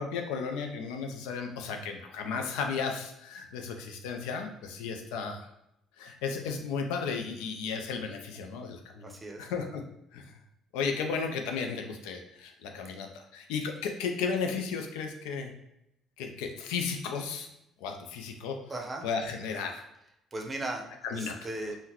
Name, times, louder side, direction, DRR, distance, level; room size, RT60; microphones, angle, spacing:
voice 1, 0.0-5.5 6.0-9.1 9.4-9.8 10.1-10.3 10.7-15.5 16.2-17.5 17.8-18.6 19.0-19.8 21.0-21.4, left 5 dB, 85° left, 4 dB, 0.4 m, -34 dB
voice 2, 9.0-9.5 18.7-19.0 20.3-21.8, right 2 dB, 25° right, 2 dB, 0.7 m, -37 dB
3.7 x 2.1 x 2.9 m, 0.83 s
supercardioid pair, 70°, 0 cm